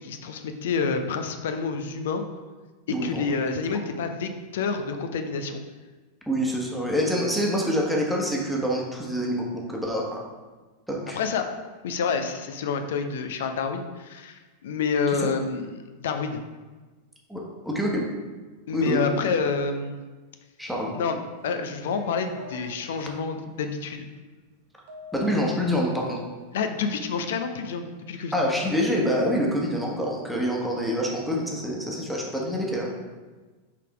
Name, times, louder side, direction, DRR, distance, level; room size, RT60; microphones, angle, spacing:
voice 1, 0.0-2.2 2.9-5.6 11.1-11.5 11.8-16.4 18.7-20.0 20.9-24.1 26.5-28.3, left 5 dB, 60° left, 7 dB, 0.6 m, -28 dB
voice 2, 2.9-3.2 6.3-10.2 10.9-11.2 15.2-15.3 17.3-18.0 18.7-19.0 20.6-20.9 25.1-26.2 28.3-32.9, equal, ahead, -2 dB, 1.3 m, -26 dB
sound 1, 21.4-22.7 24.9-26.5, left 1 dB, 50° right, 1.2 m, -43 dB
5.7 x 4.1 x 4.8 m, 1.3 s
figure-of-eight pair, 90°, 0 cm